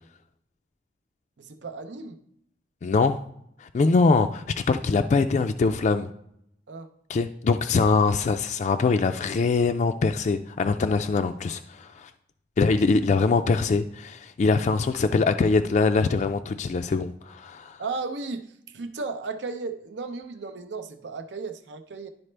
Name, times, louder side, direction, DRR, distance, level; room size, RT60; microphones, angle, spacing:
voice 1, 1.4-2.2 6.7-6.9 17.8-22.1, right 4 dB, 90° right, 0.7 m, -35 dB
voice 2, 2.8-3.2 3.6-6.1 7.1-12.1 12.6-17.8, left 4 dB, 40° left, 0.3 m, -23 dB
11.0 x 4.1 x 3.3 m
head